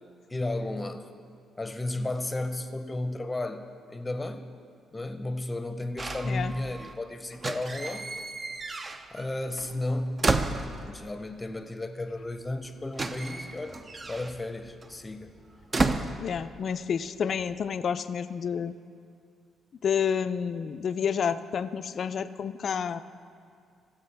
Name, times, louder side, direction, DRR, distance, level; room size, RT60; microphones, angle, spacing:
voice 1, 0.3-1.1 1.6-4.5 4.9-8.1 9.1-10.2 10.7-13.8 14.1-15.4, left 2 dB, 20° left, 8 dB, 0.7 m, -33 dB
sound 1, 6.0-7.0 7.3-9.3 9.6-11.2 12.2-12.3 12.5-16.9 17.2-17.7, right 3 dB, 30° right, 0.5 m, -32 dB
voice 2, 16.2-18.7 19.8-23.0, left 7 dB, 55° left, 12 dB, 0.3 m, -29 dB
16.5 x 7.4 x 3.4 m, 2.3 s
cardioid pair, 90°, 0 cm